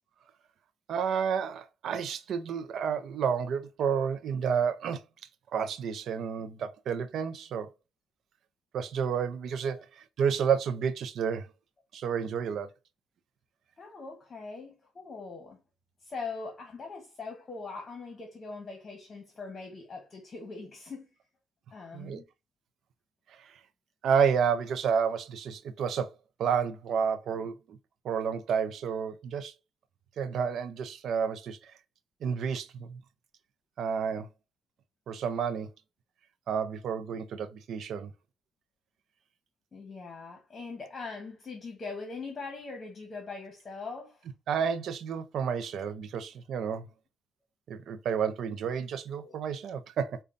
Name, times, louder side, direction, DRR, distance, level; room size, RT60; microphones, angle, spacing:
voice 1, 0.9-5.0 5.5-7.7 8.7-11.5 11.9-12.7 21.9-22.2 23.4-23.6 24.0-26.1 26.4-27.8 28.0-29.5 30.2-31.7 32.2-33.0 33.8-34.3 35.1-35.7 36.5-38.1 44.5-46.9 47.7-50.2, right 7 dB, 70° right, 0.4 m, -30 dB
voice 2, 13.8-15.6 16.0-21.1 21.7-22.2 39.7-44.3 49.2-49.4, left 4 dB, 40° left, 1.1 m, -41 dB
5.0 x 2.2 x 2.5 m
cardioid pair, 90°, 0 cm